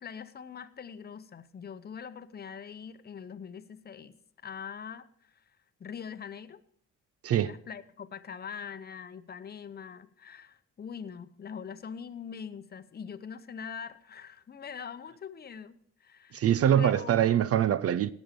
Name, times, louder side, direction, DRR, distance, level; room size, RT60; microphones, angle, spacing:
voice 1, 0.0-4.1 4.4-5.4 5.8-6.6 7.4-16.4 16.8-17.1, left 7 dB, 30° left, 0.8 m, -43 dB
voice 2, 16.3-18.1, right 10 dB, 50° right, 0.5 m, -24 dB
17.5 x 6.2 x 5.1 m
cardioid pair, 90°, 30 cm